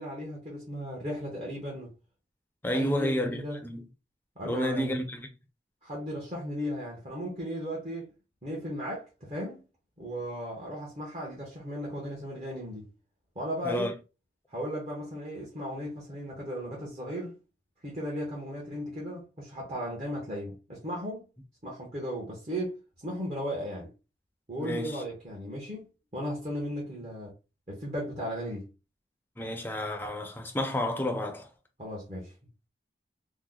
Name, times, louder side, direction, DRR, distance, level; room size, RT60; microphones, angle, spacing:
voice 1, 0.0-1.9 2.7-3.6 4.4-4.9 5.8-8.1 8.4-9.6 10.0-12.9 13.3-13.9 14.5-17.3 17.8-21.2 21.6-23.9 24.5-27.3 27.7-28.7 31.8-32.3, equal, 40° right, 1.0 m, -36 dB
voice 2, 2.6-3.8 4.4-5.3 13.6-13.9 24.6-25.0 29.4-31.5, left 1 dB, 10° left, 0.5 m, -30 dB
3.0 x 2.1 x 3.7 m
head